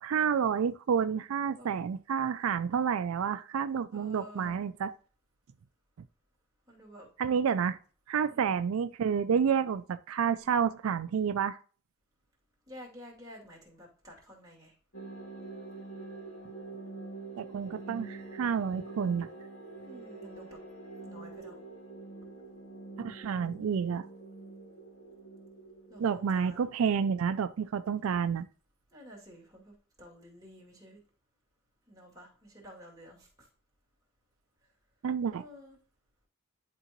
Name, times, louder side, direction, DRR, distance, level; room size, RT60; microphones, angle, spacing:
voice 1, 0.0-4.9 7.2-7.8 8.1-11.6 17.4-19.3 23.0-24.1 26.0-28.5 35.0-35.4, right 7 dB, 85° right, 11 dB, 0.4 m, -29 dB
voice 2, 3.9-4.6 6.7-7.1 8.3-8.6 12.7-14.7 19.8-20.6 21.0-21.6 22.2-22.4 25.9-26.6 28.9-31.0 31.9-33.5 35.3-35.8, equal, 20° right, -4 dB, 2.5 m, -51 dB
sound 1, 14.9-26.7, right 3 dB, 75° left, 1.9 m, -46 dB
11.0 x 3.8 x 2.9 m, 0.39 s
head